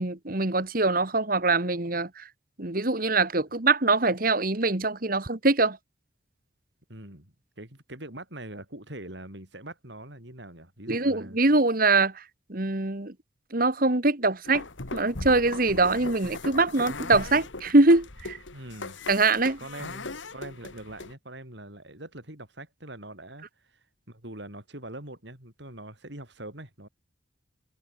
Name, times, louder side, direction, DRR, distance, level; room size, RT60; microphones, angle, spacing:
voice 1, 0.0-2.3 2.6-5.8 10.9-12.2 12.5-13.1 13.5-14.6 14.9-18.4 19.1-19.6, right 3 dB, 45° right, 1.7 m, -23 dB
voice 2, 6.9-11.4 18.5-19.0 19.6-26.9, right 1 dB, 60° right, 5.8 m, -43 dB
sound 1, 14.5-21.1, left 3 dB, 70° left, 2.1 m, -39 dB
head